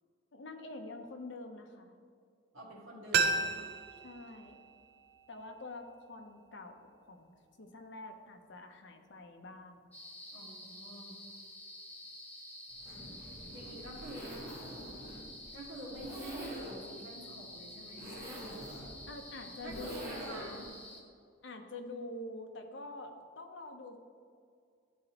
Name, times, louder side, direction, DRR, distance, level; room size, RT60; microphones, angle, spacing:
voice 1, 0.3-1.9 4.0-4.6 5.3-9.9 19.1-20.4 21.4-24.0, left 2 dB, 60° left, 5 dB, 0.6 m, -46 dB
voice 2, 2.5-3.7 10.3-11.1 13.5-14.4 15.5-18.6 19.6-20.7, right 1 dB, 75° right, -4 dB, 1.5 m, -48 dB
sound 1, 3.1-5.9 6.2-6.3, right 4 dB, 50° right, 0.4 m, -34 dB
sound 2, 9.9-21.0, left 1 dB, 10° left, 0.6 m, -49 dB
Zipper (clothing), 12.7-20.7, equal, 15° right, 1.6 m, -46 dB
10.5 x 3.9 x 2.9 m, 2.2 s
head